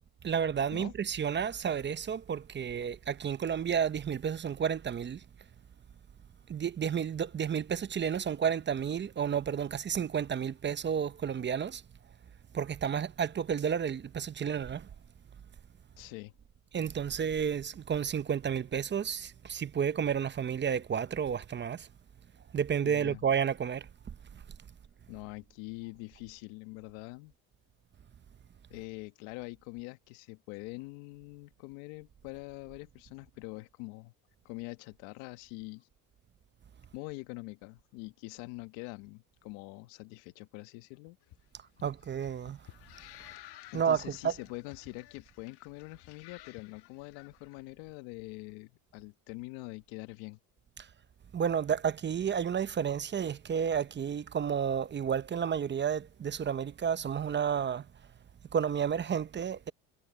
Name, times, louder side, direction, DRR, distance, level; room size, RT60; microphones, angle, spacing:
voice 1, 0.2-5.2 6.5-11.8 12.5-14.9 16.7-21.9 22.5-23.9 41.8-42.6 43.7-44.4 50.8-50.9 51.3-57.9 58.5-59.7, right 7 dB, 25° right, 0.8 m, -31 dB
voice 2, 16.0-16.3 22.8-23.2 25.1-27.3 28.7-34.1 34.4-35.9 36.9-41.2 43.3-43.4 43.7-50.4, left 24 dB, 75° left, 1.6 m, -44 dB
sound 1, 41.2-47.5, left 15 dB, 55° left, 1.7 m, -54 dB
supercardioid pair, 100°, 47 cm